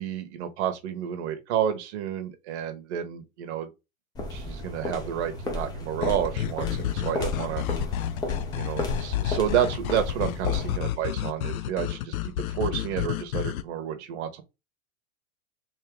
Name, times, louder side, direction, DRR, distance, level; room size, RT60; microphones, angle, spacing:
voice 1, 0.0-3.7 4.3-7.6 8.5-14.4, right 9 dB, 55° right, 1.1 m, -30 dB
sound 1, 4.1-11.0, left 1 dB, 10° left, 0.5 m, -34 dB
sound 2, 6.0-13.6, left 12 dB, 80° left, 0.5 m, -30 dB
3.7 x 2.6 x 3.5 m
hypercardioid pair, 140°, 41 cm